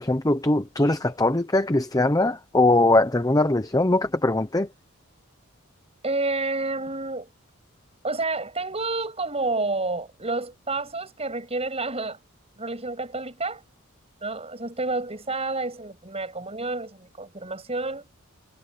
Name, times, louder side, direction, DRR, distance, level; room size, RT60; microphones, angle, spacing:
voice 1, 0.0-4.7, left 2 dB, 15° left, 0.8 m, -21 dB
voice 2, 6.0-7.3 8.0-12.2 12.6-13.6 14.2-18.1, right 3 dB, 30° right, 7.8 m, -29 dB
head